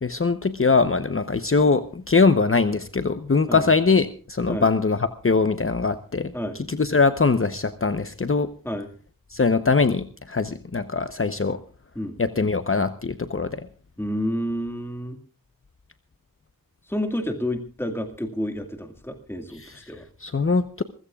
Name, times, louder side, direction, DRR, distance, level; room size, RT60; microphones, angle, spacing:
voice 1, 0.0-6.3 6.7-8.5 9.3-11.6 12.2-13.7 19.6-19.9 20.2-20.8, left 4 dB, 40° left, 10 dB, 0.9 m, -22 dB
voice 2, 14.0-15.2 16.9-20.1, equal, 5° left, 6 dB, 1.9 m, -29 dB
27.0 x 15.5 x 2.4 m, 0.38 s
wide cardioid pair, 85°, 34 cm